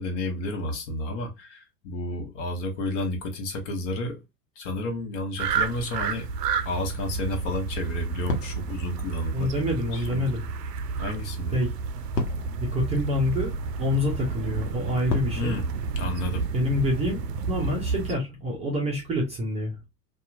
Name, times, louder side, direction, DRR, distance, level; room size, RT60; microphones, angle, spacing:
voice 1, 0.0-4.2 4.6-6.3 6.6-9.5 9.9-10.3 11.0-11.6 15.3-15.6 16.0-16.4, left 1 dB, 45° left, 1.0 m, -31 dB
sound 1, 5.4-18.2, right 5 dB, 75° right, 0.5 m, -31 dB
sound 2, 8.2-15.9, left 2 dB, 80° left, 0.9 m, -37 dB
voice 2, 9.3-10.4 11.5-11.7 12.6-13.5 13.8-15.5 16.5-19.8, left 1 dB, 15° right, 0.5 m, -27 dB
2.7 x 2.3 x 2.4 m
figure-of-eight pair, 95°, 49 cm